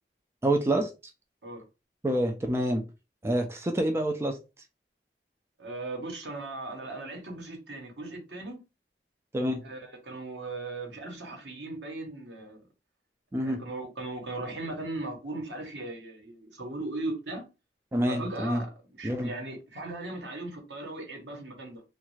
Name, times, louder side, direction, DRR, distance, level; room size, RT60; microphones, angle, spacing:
voice 1, 0.4-0.9 2.0-2.8 3.2-4.4 9.3-9.6 13.3-13.6 17.9-18.6 19.0-19.3, right 1 dB, 15° right, 0.3 m, -27 dB
voice 2, 5.6-8.6 9.6-12.6 13.4-17.4 18.1-21.8, right 2 dB, 90° right, 1.1 m, -38 dB
3.2 x 2.4 x 3.1 m
head